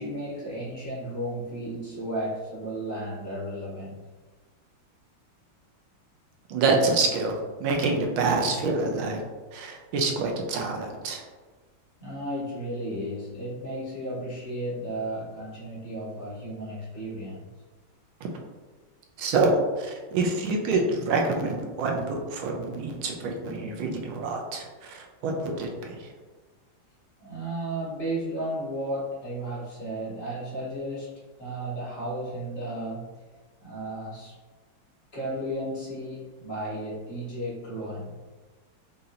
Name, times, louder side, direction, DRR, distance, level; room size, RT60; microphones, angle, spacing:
voice 1, 0.0-4.0 12.0-17.5 27.2-33.1 33.6-34.4 35.1-38.2, right 1 dB, 45° left, -8 dB, 1.4 m, -34 dB
voice 2, 6.5-9.2 9.5-11.2 19.2-26.0, right 3 dB, 85° right, 1 dB, 1.5 m, -26 dB
5.7 x 2.8 x 2.5 m, 1.3 s
omnidirectional pair, 2.2 m